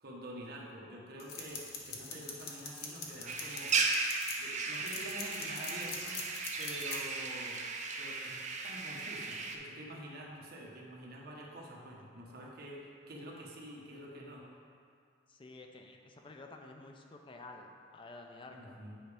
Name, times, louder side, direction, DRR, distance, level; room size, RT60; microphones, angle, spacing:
voice 1, 0.0-3.8 4.4-6.2 6.6-7.6 8.0-14.5 18.5-19.0, right 1 dB, 55° right, -3 dB, 1.1 m, -47 dB
sound 1, 1.2-4.4 4.8-7.0, left 5 dB, 55° left, 0.9 m, -42 dB
sound 2, 3.3-9.6, right 4 dB, 40° right, 0.5 m, -36 dB
voice 2, 15.3-18.8, left 2 dB, 25° left, 3 dB, 0.4 m, -51 dB
9.1 x 4.8 x 3.4 m, 2.2 s
head